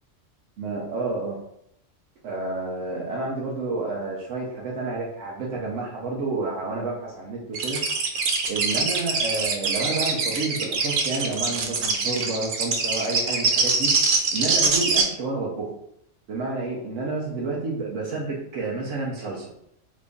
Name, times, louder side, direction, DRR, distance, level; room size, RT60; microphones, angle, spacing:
voice 1, 0.6-1.4 2.2-7.8 8.5-15.7 16.3-19.7, right 3 dB, 80° right, -3 dB, 1.0 m, -30 dB
sound 1, 7.5-15.0, right 4 dB, 60° right, 0.6 m, -23 dB
2.9 x 2.5 x 3.5 m, 0.74 s
omnidirectional pair, 1.3 m